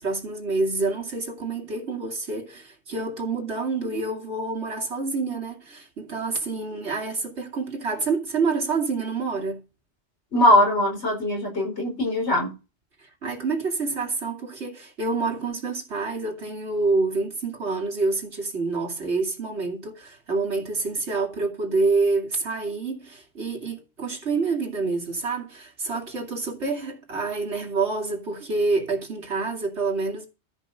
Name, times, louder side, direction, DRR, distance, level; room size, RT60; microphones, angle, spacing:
voice 1, 0.0-9.7 13.0-30.3, right 3 dB, 75° right, 2.7 m, -27 dB
voice 2, 10.3-12.5, left 1 dB, 75° left, 5.1 m, -21 dB
13.5 x 5.4 x 6.5 m
omnidirectional pair, 1.2 m